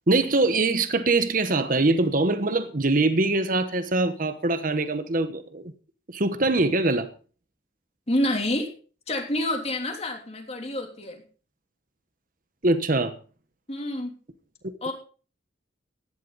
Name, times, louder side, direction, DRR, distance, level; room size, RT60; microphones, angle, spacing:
voice 1, 0.1-5.7 6.1-7.1 12.6-13.2 14.6-14.9, right 2 dB, 45° right, 1.1 m, -23 dB
voice 2, 8.1-8.7 9.1-11.2 13.7-14.2 14.8-14.9, left 1 dB, 35° left, 3.2 m, -28 dB
15.5 x 11.5 x 4.1 m
head